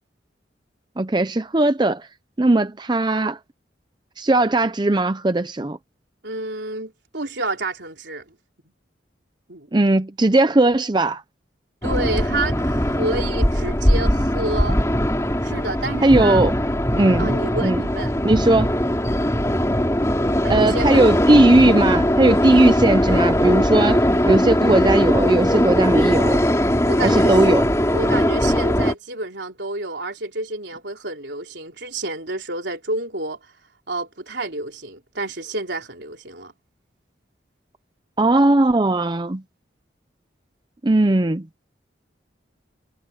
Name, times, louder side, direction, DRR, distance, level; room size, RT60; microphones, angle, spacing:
voice 1, 1.0-2.1 2.4-3.4 4.2-5.8 9.7-11.2 16.0-16.5 16.9-17.4 17.6-17.8 18.2-18.7 20.5-26.4 27.0-27.7 38.2-39.4 40.8-41.5, right 2 dB, 25° right, 0.6 m, -18 dB
voice 2, 6.2-8.2 9.5-9.7 11.8-14.8 15.4-16.5 17.2-18.1 20.4-21.0 26.9-27.4 27.9-33.4 33.9-36.5, right 2 dB, 70° right, 3.7 m, -29 dB
Train coming, 11.8-28.9, equal, 15° left, 3.3 m, -20 dB
head